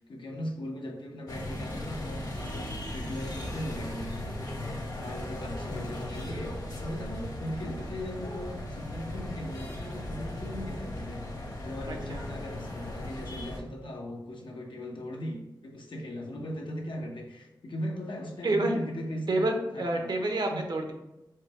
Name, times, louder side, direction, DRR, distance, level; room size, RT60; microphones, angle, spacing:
voice 1, 0.0-6.5 6.8-20.1 20.5-20.6, equal, 80° left, 1 dB, 0.8 m, -39 dB
sound 1, 1.3-13.6, left 1 dB, 50° left, 1.0 m, -37 dB
voice 2, 18.4-18.8 19.3-20.9, right 2 dB, 60° right, 3 dB, 0.8 m, -28 dB
4.6 x 2.2 x 4.5 m, 0.94 s
wide cardioid pair, 95°, 8 cm